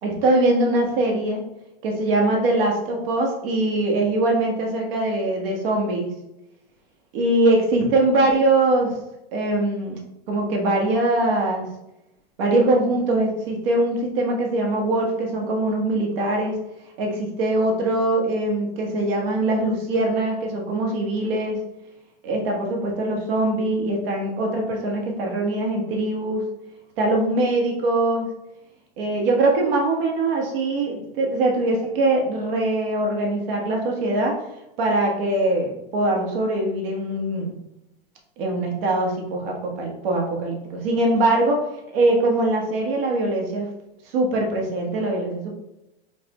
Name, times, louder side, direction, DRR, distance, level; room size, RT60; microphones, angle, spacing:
voice 1, 0.0-1.4 1.8-6.1 7.1-8.9 9.3-10.0 10.3-11.7 12.4-16.6 17.0-21.6 22.2-26.4 27.0-28.3 29.0-34.4 34.8-37.5 38.4-41.6 41.9-43.7 44.1-45.5, right 2 dB, 70° right, 0 dB, 1.3 m, -22 dB
5.4 x 2.6 x 2.9 m, 0.89 s
supercardioid pair, 125°, 30 cm